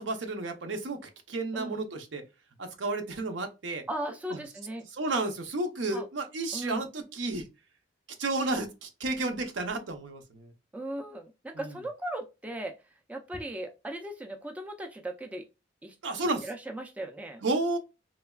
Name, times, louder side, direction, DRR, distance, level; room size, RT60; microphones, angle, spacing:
voice 1, 0.0-2.2 2.6-3.8 4.3-4.4 4.9-7.5 8.2-10.5 11.5-11.7 16.0-16.5 17.4-17.8, right 2 dB, 75° right, 0.6 m, -32 dB
voice 2, 3.9-4.8 5.9-6.1 6.5-6.9 10.7-12.7 13.1-15.4 15.8-16.0 16.4-17.4, right 1 dB, 10° right, 0.3 m, -37 dB
3.2 x 2.2 x 2.2 m
head